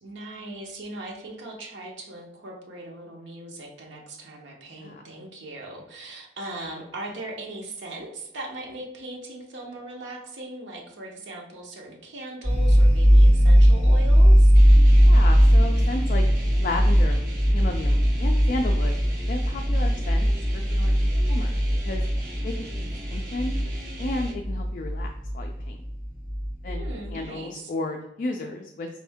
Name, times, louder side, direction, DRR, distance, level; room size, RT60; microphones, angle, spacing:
voice 1, 0.0-14.5 26.6-27.7, right 1 dB, 80° right, 0 dB, 0.8 m, -39 dB
voice 2, 4.7-5.0 15.0-16.2 16.6-17.3 17.5-19.0 19.3-22.0 22.4-23.5 24.0-25.8 26.6-26.8 27.1-28.9, left 2 dB, 45° left, 3 dB, 0.3 m, -33 dB
sound 1, 12.4-27.1, equal, 20° left, 1.4 m, -19 dB
sound 2, 14.5-24.3, right 1 dB, 50° right, 0.9 m, -42 dB
4.2 x 2.6 x 3.4 m, 0.87 s
head